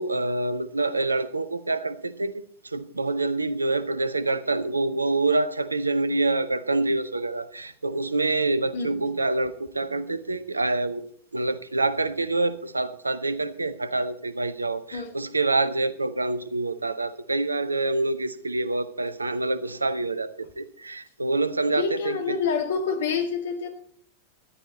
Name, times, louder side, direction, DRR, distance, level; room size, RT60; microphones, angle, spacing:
voice 1, 0.0-2.3 2.6-11.0 11.3-22.4, right 2 dB, 80° right, 15 dB, 0.7 m, -26 dB
voice 2, 21.7-23.7, left 5 dB, 60° left, 6 dB, 1.9 m, -27 dB
14.0 x 11.0 x 4.1 m, 0.62 s
figure-of-eight pair, 90°, 0 cm